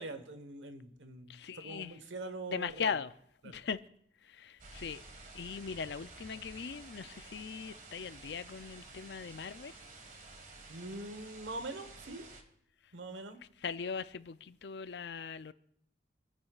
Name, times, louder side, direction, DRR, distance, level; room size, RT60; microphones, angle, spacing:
voice 1, 0.0-3.0 3.4-3.6 10.7-12.3 12.9-13.4, right 2 dB, 85° right, 1.3 m, -43 dB
voice 2, 1.3-2.0 2.5-3.1 3.4-3.8 4.2-5.0 5.3-9.8 13.6-15.5, left 6 dB, 65° left, 0.5 m, -39 dB
sound 1, 4.6-12.4, right 3 dB, 45° right, 1.6 m, -52 dB
28.5 x 9.8 x 2.4 m
head